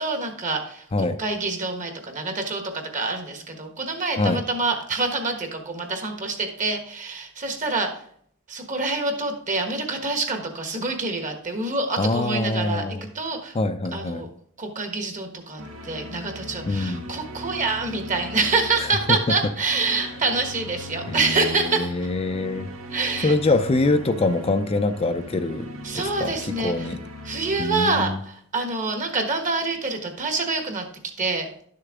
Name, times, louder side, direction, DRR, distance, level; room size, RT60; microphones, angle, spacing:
voice 1, 0.0-7.9 8.5-12.8 13.1-13.5 13.9-14.3 14.6-21.9 22.9-23.3 25.8-26.9 27.2-30.9 31.2-31.5, right 3 dB, 35° right, 5 dB, 1.4 m, -26 dB
voice 2, 12.0-13.0 13.5-14.2 16.7-17.1 18.8-19.2 19.9-20.1 21.1-22.7 23.2-25.7 25.9-27.0 27.6-28.2, left 2 dB, 30° left, 8 dB, 0.5 m, -24 dB
sound 1, 15.6-27.6, left 1 dB, 80° right, 1.3 m, -39 dB
11.5 x 6.6 x 3.6 m, 0.64 s
head